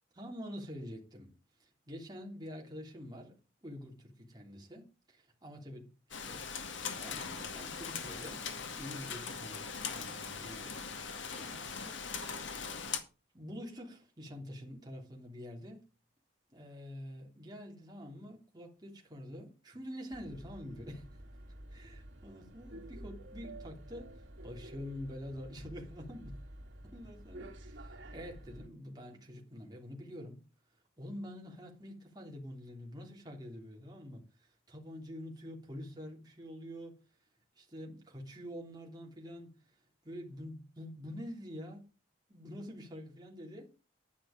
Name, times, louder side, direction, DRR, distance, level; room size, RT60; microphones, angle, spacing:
voice 1, 0.2-1.3 1.6-6.4 7.0-8.5 8.8-10.8 11.3-12.0 13.3-15.8 16.5-21.1 21.7-26.4 26.8-30.4 31.0-37.0 37.5-39.5 40.0-41.9 42.3-43.7, equal, 20° right, 3.2 m, -47 dB
Rain, 6.1-13.0, left 6 dB, 75° left, 2.0 m, -40 dB
sound 1, 20.1-28.7, right 1 dB, 75° right, 2.8 m, -50 dB
10.5 x 10.0 x 5.1 m
head